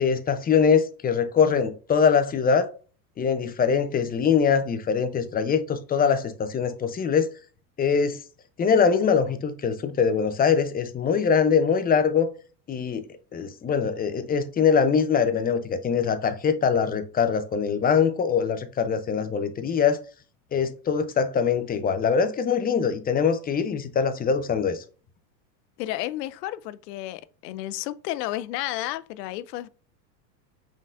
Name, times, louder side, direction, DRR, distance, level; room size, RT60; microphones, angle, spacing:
voice 1, 0.0-2.7 3.2-7.3 7.8-8.2 8.6-12.3 12.7-13.0 13.3-20.0 20.5-24.8, left 6 dB, 20° left, 0.6 m, -23 dB
voice 2, 25.8-29.7, left 15 dB, 70° left, 0.6 m, -32 dB
5.2 x 3.9 x 2.5 m
hypercardioid pair, 100°, 50 cm